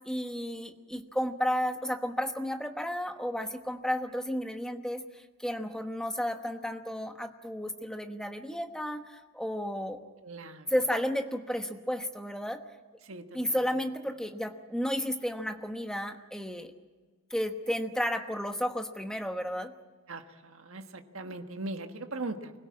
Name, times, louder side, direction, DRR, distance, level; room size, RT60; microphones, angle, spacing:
voice 1, 0.0-10.0 10.7-12.6 13.3-16.7 17.3-19.7, equal, 5° left, 6 dB, 1.1 m, -32 dB
voice 2, 10.2-10.7 13.0-13.6 20.1-22.5, right 2 dB, 75° right, 6 dB, 1.5 m, -40 dB
24.5 x 17.0 x 8.6 m, 1.4 s
head